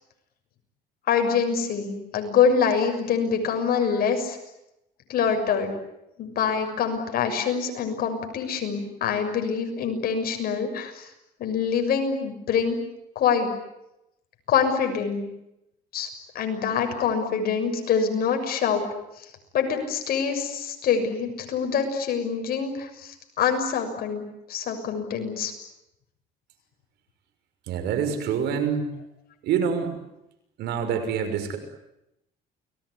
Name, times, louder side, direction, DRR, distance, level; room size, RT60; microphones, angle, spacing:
voice 1, 1.1-4.4 5.1-5.7 6.2-11.0 11.4-12.8 13.1-13.5 14.5-15.2 15.9-16.1 16.3-18.9 19.5-24.2 24.5-25.5, left 6 dB, 65° left, 5 dB, 6.7 m, -25 dB
voice 2, 27.7-28.9 29.4-30.0 30.6-31.6, right 7 dB, 80° right, 7 dB, 6.3 m, -26 dB
29.5 x 20.0 x 9.9 m, 0.87 s
cardioid pair, 110°, 17 cm